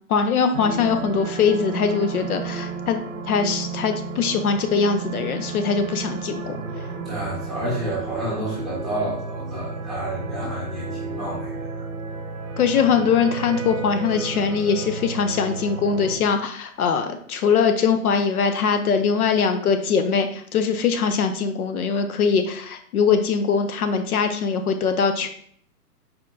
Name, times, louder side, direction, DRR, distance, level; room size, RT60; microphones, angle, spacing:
voice 1, 0.1-6.5 12.6-25.3, left 6 dB, 70° left, 8 dB, 0.6 m, -22 dB
sound 1, 0.5-16.2, right 5 dB, 55° right, 0.7 m, -32 dB
voice 2, 7.0-11.8, right 1 dB, ahead, -8 dB, 0.9 m, -30 dB
4.4 x 4.2 x 2.5 m, 0.62 s
hypercardioid pair, 165°, 46 cm